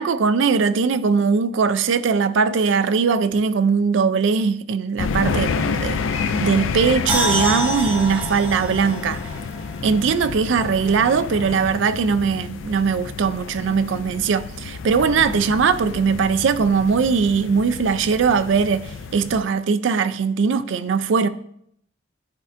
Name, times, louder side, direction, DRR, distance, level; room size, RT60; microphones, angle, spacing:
voice 1, 0.0-9.2 9.8-21.3, right 5 dB, 75° right, 0.4 m, -20 dB
sound 1, 5.0-19.4, left 5 dB, 85° left, 0.4 m, -29 dB
sound 2, 7.1-10.3 10.6-10.7, right 1 dB, 10° right, 0.7 m, -27 dB
10.5 x 4.3 x 2.5 m
head